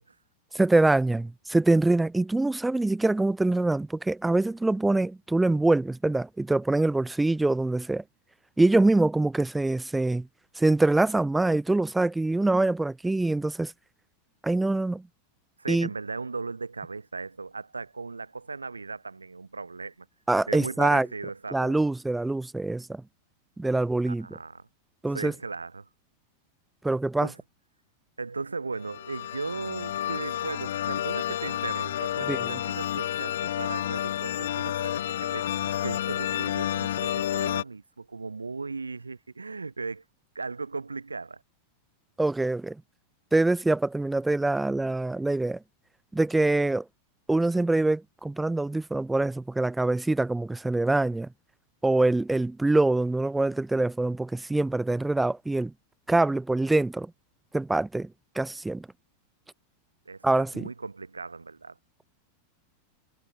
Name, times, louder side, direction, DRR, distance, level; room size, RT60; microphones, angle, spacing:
voice 1, 0.5-8.0 8.6-10.3 10.6-13.7 14.4-15.0 15.7-15.9 20.3-21.1 21.5-23.0 23.6-24.3 25.0-25.3 26.8-27.3 32.3-32.6 42.2-42.8 43.3-45.6 46.1-46.8 47.3-51.3 51.8-55.7 56.1-57.1 57.5-58.1 58.3-58.9 60.2-60.6, right 2 dB, 5° right, 3.2 m, -24 dB
voice 2, 15.6-20.1 20.5-21.7 24.1-24.7 25.1-25.9 27.2-27.4 28.2-40.0 40.3-41.4 60.1-61.7, right 4 dB, 80° right, 4.0 m, -37 dB
sound 1, 28.8-37.6, left 11 dB, 60° left, 1.0 m, -30 dB
figure-of-eight pair, 90°, 0 cm